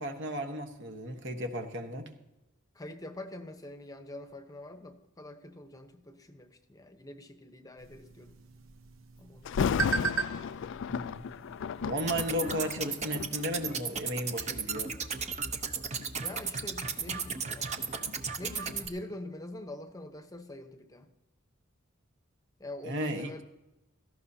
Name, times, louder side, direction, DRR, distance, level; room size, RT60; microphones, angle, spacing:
voice 1, 0.0-2.1 10.9-11.3 11.8-14.9 22.8-23.4, equal, 60° right, 5 dB, 1.3 m, -35 dB
voice 2, 2.7-8.4 9.2-9.7 16.2-21.1 22.6-23.4, left 1 dB, 15° left, 8 dB, 0.9 m, -45 dB
sound 1, 7.8-12.9, right 5 dB, 75° right, 0.9 m, -38 dB
Thunder, 9.4-14.4 15.1-15.3 15.9-18.8 19.1-19.2, left 7 dB, 60° left, 0.3 m, -35 dB
sound 2, 12.0-18.9, right 5 dB, 35° right, 0.8 m, -35 dB
17.5 x 14.5 x 2.8 m, 0.95 s
head